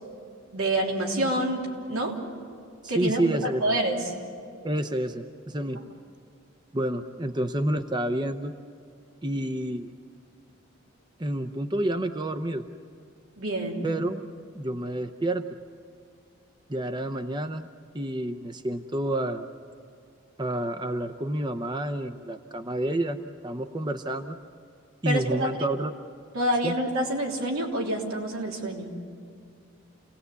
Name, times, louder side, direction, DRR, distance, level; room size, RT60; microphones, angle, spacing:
voice 1, 0.5-2.2 2.9-4.0 13.4-13.9 25.1-25.5 26.3-29.0, right 1 dB, 90° right, -1 dB, 3.5 m, -27 dB
voice 2, 2.8-3.6 4.6-5.9 6.7-8.5 9.2-9.9 11.2-12.6 13.8-14.2 14.5-15.5 16.7-17.7 17.9-19.5 20.4-24.4 25.0-25.9 26.6-26.8, right 1 dB, 20° right, 8 dB, 0.7 m, -29 dB
28.5 x 18.5 x 8.3 m, 2.3 s
head